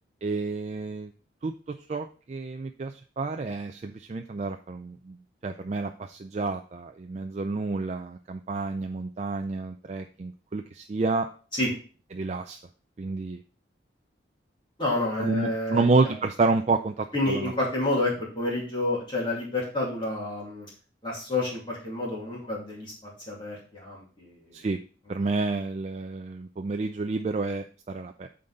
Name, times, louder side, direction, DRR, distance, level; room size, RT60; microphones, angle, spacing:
voice 1, 0.2-1.1 1.4-5.2 5.4-11.3 12.1-12.6 13.0-13.4 15.2-17.5 24.5-24.8 25.1-28.3, right 3 dB, 35° right, 6 dB, 0.4 m, -29 dB
voice 2, 14.8-16.1 17.1-20.7 21.0-24.6, left 2 dB, 25° left, -5 dB, 2.5 m, -29 dB
8.8 x 4.0 x 3.9 m, 0.39 s
head